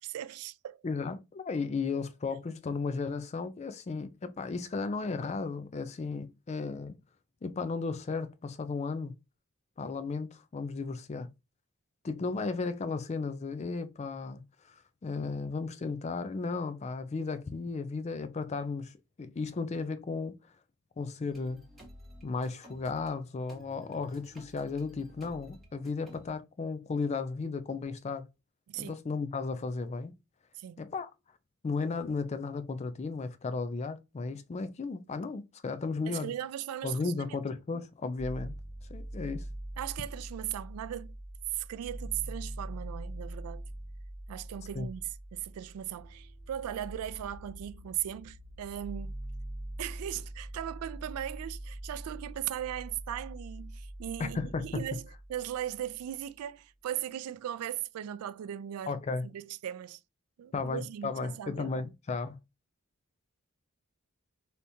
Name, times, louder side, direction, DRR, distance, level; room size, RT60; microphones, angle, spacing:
voice 1, 0.0-0.8 28.7-28.9 30.6-30.8 36.1-37.4 39.8-41.1 41.5-43.7 44.3-49.2 49.8-55.0 55.3-58.9 59.3-60.0 60.4-61.7, right 11 dB, 85° right, 0.3 m, -38 dB
voice 2, 0.8-7.0 7.4-9.1 9.8-11.3 12.0-20.3 21.0-21.6 22.2-28.3 28.8-30.1 30.8-31.1 31.6-36.3 36.8-38.6 38.9-39.5 44.8-44.9 54.2-54.8 58.9-59.3 60.5-62.4, left 4 dB, 30° left, 0.3 m, -35 dB
sound 1, 21.3-23.1 23.5-26.3, equal, ahead, 1.2 m, -53 dB
sound 2, 38.2-56.1, right 1 dB, 65° left, 1.4 m, -43 dB
3.4 x 2.8 x 2.6 m
head